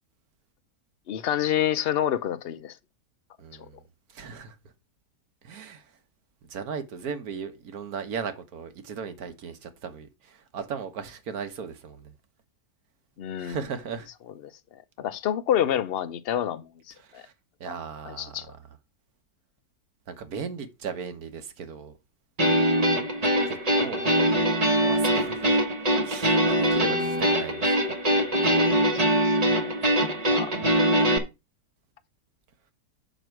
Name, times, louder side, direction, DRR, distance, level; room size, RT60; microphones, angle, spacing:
voice 1, 1.1-2.8 13.2-13.6 14.7-17.2 18.1-18.5 26.8-26.9 28.9-29.9 30.3-30.5, left 10 dB, 55° left, 0.7 m, -28 dB
voice 2, 3.4-3.8 4.1-4.6 5.4-5.9 6.5-12.1 13.4-14.1 17.0-17.3 17.6-18.4 20.1-22.0 23.5-24.1 24.8-25.6 26.0-27.7, right 6 dB, 70° right, 1.6 m, -37 dB
sound 1, 22.4-31.2, equal, 30° right, 1.1 m, -23 dB
7.9 x 6.1 x 4.5 m
omnidirectional pair, 1.6 m